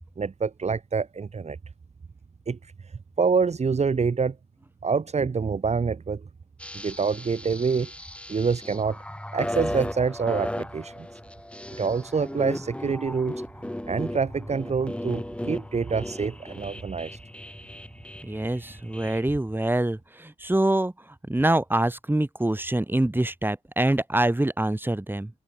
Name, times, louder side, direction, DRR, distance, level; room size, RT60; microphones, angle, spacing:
voice 1, 0.2-1.6 2.5-2.7 3.2-4.4 4.8-6.2 6.7-7.9 8.3-9.0 9.3-11.1 11.8-13.4 13.9-17.2, right 5 dB, 45° right, 2.9 m, -26 dB
sound 1, 6.6-19.2, left 1 dB, 5° left, 4.1 m, -36 dB
voice 2, 18.2-25.3, right 1 dB, 15° right, 7.6 m, -25 dB
cardioid pair, 60°, 16 cm